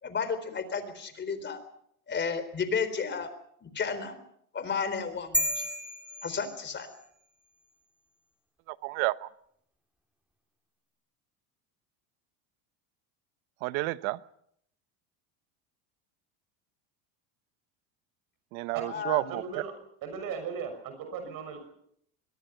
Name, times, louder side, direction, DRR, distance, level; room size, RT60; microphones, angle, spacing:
voice 1, 0.0-1.6 2.1-3.3 3.6-4.1 4.5-5.7 6.2-6.9 18.9-19.2, left 5 dB, 25° left, 3.9 m, -32 dB
sound 1, 5.3-7.1, equal, 5° right, 2.8 m, -32 dB
voice 2, 8.7-9.3 13.6-14.2 18.5-19.4, right 20 dB, 75° right, 1.1 m, -30 dB
voice 3, 18.7-19.7 20.0-21.6, right 6 dB, 55° right, 6.5 m, -37 dB
24.0 x 21.5 x 5.9 m
supercardioid pair, 125°, 42 cm